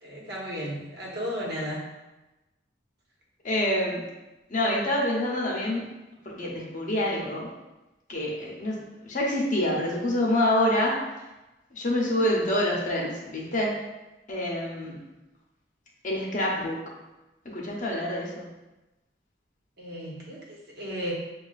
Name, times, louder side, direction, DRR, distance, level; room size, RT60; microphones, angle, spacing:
voice 1, 0.0-1.9 19.8-21.1, equal, 65° right, -4 dB, 1.0 m, -34 dB
voice 2, 3.4-4.0 4.5-5.9 6.2-7.5 8.1-8.8 9.0-11.0 11.7-13.8 14.3-15.0 16.0-16.8 17.5-18.5, left 1 dB, 45° left, -3 dB, 0.8 m, -26 dB
6.2 x 2.3 x 2.4 m, 1.0 s
head